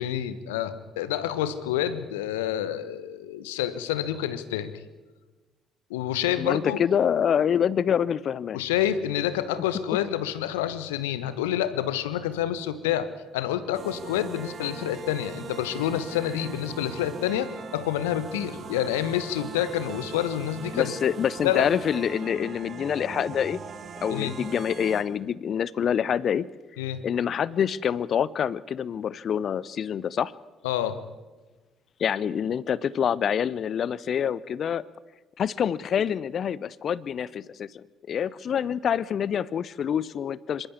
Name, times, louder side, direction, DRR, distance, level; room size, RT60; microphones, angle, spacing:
voice 1, 0.0-4.7 5.9-6.8 8.5-20.9 21.4-21.7 24.1-24.3 26.8-27.0 30.6-31.0, left 11 dB, 75° left, 14 dB, 1.1 m, -28 dB
voice 2, 6.4-8.6 20.7-23.6 24.0-26.5 27.0-30.3 32.0-34.8 35.4-40.7, left 8 dB, 50° left, 21 dB, 0.6 m, -26 dB
sound 1, 13.7-25.0, right 6 dB, 45° right, 2.2 m, -40 dB
26.0 x 13.5 x 8.3 m, 1.2 s
figure-of-eight pair, 50°, 0 cm